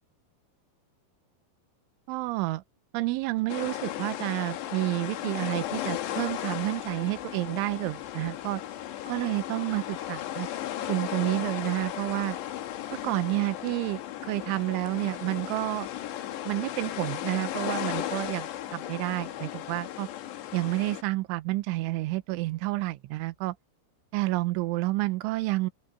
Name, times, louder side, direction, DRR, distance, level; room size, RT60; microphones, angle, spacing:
voice 1, 2.1-2.6 2.9-8.6 9.1-10.5 10.9-12.4 13.0-15.9 16.4-20.1 20.5-23.6 24.1-25.7, right 19 dB, 85° right, 3.2 m, -30 dB
sound 1, 3.5-21.0, left 12 dB, 70° left, 3.6 m, -36 dB
open air
omnidirectional pair, 5.4 m